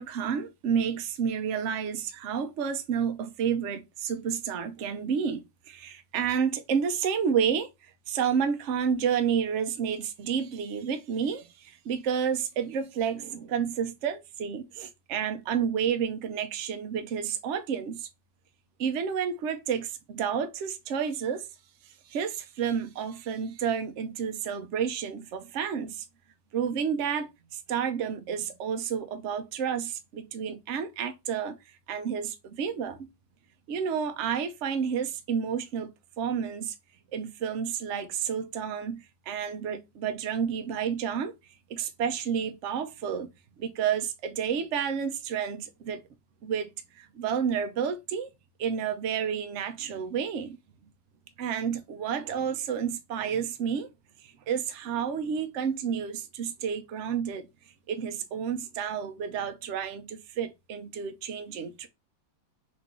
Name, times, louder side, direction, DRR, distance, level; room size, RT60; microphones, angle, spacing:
voice 1, 0.0-18.1 18.8-21.5 22.1-26.0 26.5-31.6 31.9-33.1 33.7-35.9 36.2-36.7 37.1-41.3 41.7-43.3 43.6-46.0 46.4-46.7 47.0-48.3 48.6-50.6 51.4-53.9 54.2-57.5 57.9-61.9, right 7 dB, 85° right, 0.6 m, -30 dB
5.9 x 2.6 x 2.9 m
omnidirectional pair, 2.1 m